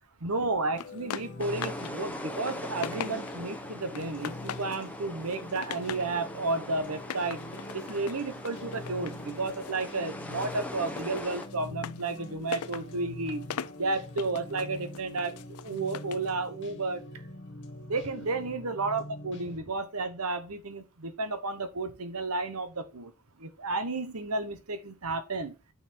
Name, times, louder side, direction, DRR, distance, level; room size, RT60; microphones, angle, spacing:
voice 1, 0.2-7.4 7.7-13.5 13.8-15.4 15.6-17.0 17.9-23.1 23.4-25.5, right 3 dB, 80° right, 1.2 m, -32 dB
sound 1, 0.7-19.6, left 1 dB, 50° left, 1.5 m, -45 dB
sound 2, 0.8-1.9 2.3-3.5 3.9-4.9 5.2-6.1 6.9-10.0 10.3-16.3, left 8 dB, 80° left, 0.4 m, -41 dB
sound 3, 1.4-11.5, left 1 dB, 5° left, 0.9 m, -41 dB
8.9 x 4.1 x 4.4 m
head